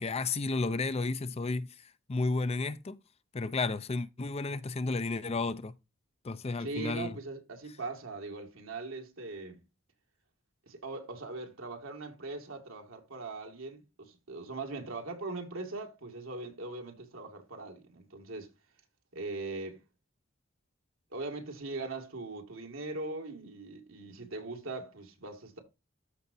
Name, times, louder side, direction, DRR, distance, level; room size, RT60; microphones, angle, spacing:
voice 1, 0.0-1.7 2.1-3.0 3.3-5.7 6.2-7.2, left 3 dB, 30° left, 0.5 m, -32 dB
voice 2, 6.6-9.6 10.7-18.5 19.1-19.8 21.1-25.6, right 3 dB, 85° right, 2.2 m, -40 dB
13.5 x 4.9 x 2.7 m
head